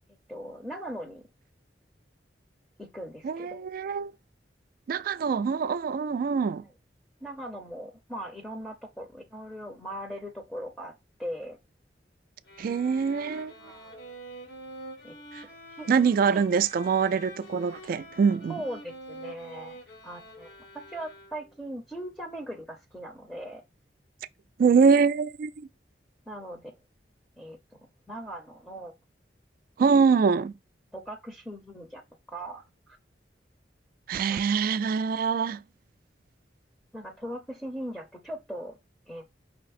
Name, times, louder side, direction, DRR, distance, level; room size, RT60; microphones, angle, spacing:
voice 1, 0.3-1.3 2.8-3.7 7.2-10.9 11.2-11.6 13.6-13.9 15.0-15.2 15.8-15.9 16.3-16.4 18.5-23.6 26.3-26.8 27.4-27.6 28.1-28.9 30.9-32.0 32.3-33.0 34.3-34.4 36.9-38.8 39.1-39.3, equal, 5° left, 0.6 m, -39 dB
voice 2, 3.2-4.1 4.9-6.6 12.6-13.5 15.3-15.4 15.9-18.6 24.6-25.7 29.8-30.5 34.1-35.6, right 5 dB, 55° right, 0.3 m, -24 dB
sound 1, 12.4-21.7, equal, 80° left, 1.3 m, -46 dB
5.6 x 2.0 x 4.1 m
head